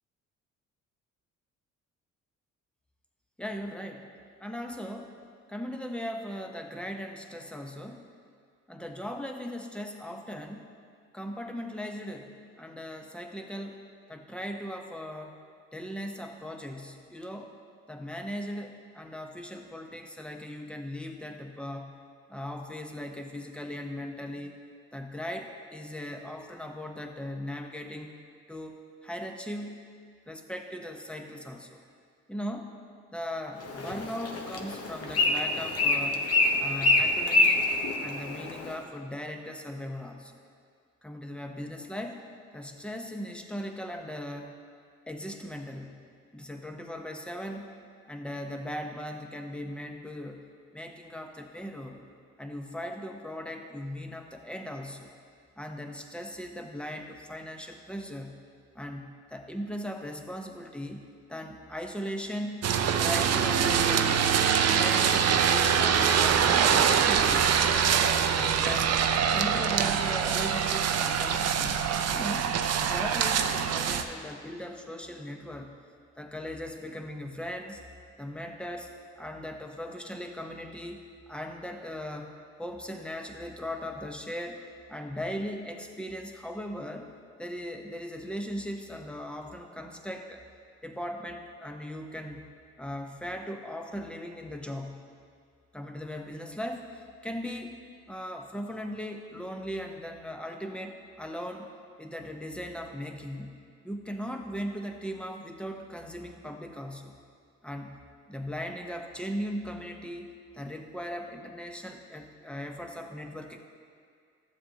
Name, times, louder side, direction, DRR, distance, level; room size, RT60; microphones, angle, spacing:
voice 1, 3.4-4.1 4.4-5.1 5.5-8.1 8.7-10.7 11.1-15.4 15.7-17.6 17.9-22.0 22.3-24.6 24.9-28.2 28.5-29.8 30.3-31.8 32.3-32.8 33.1-36.2 36.6-37.7 38.0-40.4 41.0-42.3 42.5-44.6 45.1-46.0 46.3-47.7 48.1-50.4 50.7-52.0 52.4-55.1 55.6-58.4 58.7-64.3 64.7-67.7 68.3-68.9 69.3-71.9 72.1-75.8 76.2-77.8 78.2-82.3 82.6-84.6 84.9-87.1 87.4-90.4 90.8-92.5 92.8-95.1 95.7-97.8 98.1-101.7 102.0-107.2 107.6-108.0 108.3-113.6, equal, 5° left, 4 dB, 0.8 m, -38 dB
Bird, 33.6-38.7, left 2 dB, 55° left, 1.0 m, -26 dB
sound 1, 62.6-74.0, right 7 dB, 55° right, 0.6 m, -24 dB
13.5 x 7.5 x 2.8 m, 2.2 s
cardioid pair, 90°, 30 cm